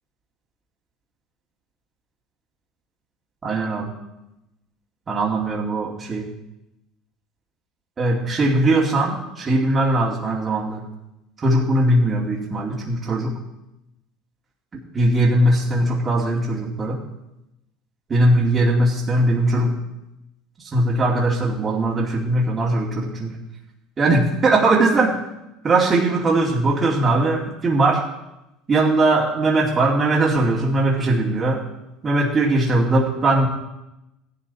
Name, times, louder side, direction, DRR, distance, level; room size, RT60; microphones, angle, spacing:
voice 1, 3.4-3.9 5.1-6.3 8.0-10.8 11.4-13.4 14.7-17.0 18.1-19.8 20.6-23.4 24.0-25.2 25.6-28.0 28.7-31.6 32.0-33.5, right 2 dB, 30° right, -4 dB, 2.4 m, -20 dB
15.5 x 10.5 x 4.2 m, 0.91 s
supercardioid pair, 95°, 0 cm